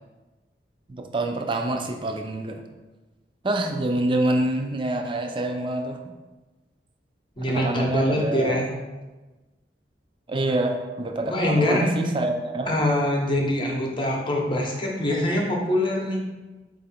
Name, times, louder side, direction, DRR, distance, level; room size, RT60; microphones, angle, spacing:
voice 1, 0.9-2.6 3.4-6.0 7.5-8.6 10.3-12.7, right 2 dB, 30° right, 4 dB, 0.4 m, -26 dB
voice 2, 7.4-8.7 11.3-11.9 12.7-16.2, left 1 dB, 30° left, -1 dB, 0.8 m, -24 dB
4.7 x 2.5 x 4.2 m, 1.2 s
head